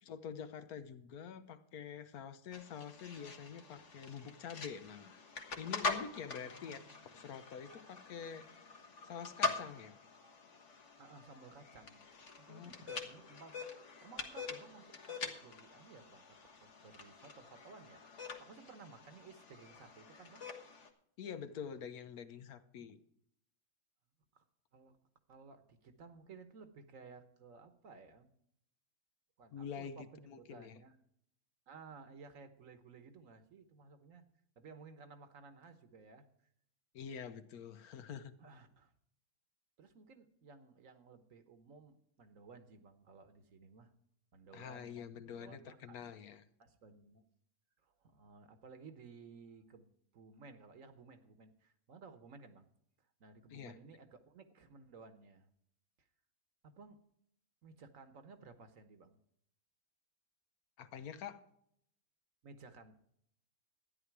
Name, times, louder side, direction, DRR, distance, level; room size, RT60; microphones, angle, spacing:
voice 1, 0.0-5.2 5.6-6.8 7.1-8.5 9.0-10.0 12.5-12.7 21.2-23.0 29.5-30.8 36.9-38.4 44.5-46.5 53.5-53.8 60.8-61.4, left 7 dB, 80° left, 11 dB, 1.4 m, -47 dB
sound 1, 2.5-20.9, left 3 dB, 55° left, 1.7 m, -44 dB
voice 2, 6.5-7.1 11.0-13.6 14.0-18.0 18.4-20.4 22.7-23.0 24.3-24.4 24.7-25.0 25.3-28.3 29.4-31.0 31.7-34.2 34.6-36.2 38.4-38.9 39.8-43.9 44.3-46.0 46.6-47.2 47.8-49.9 50.1-52.7 53.2-55.5 56.0-56.1 56.6-57.0 57.6-59.2 62.4-62.9, right 4 dB, 65° right, 9 dB, 1.5 m, -57 dB
13.0 x 10.0 x 4.7 m, 0.71 s
omnidirectional pair, 1.5 m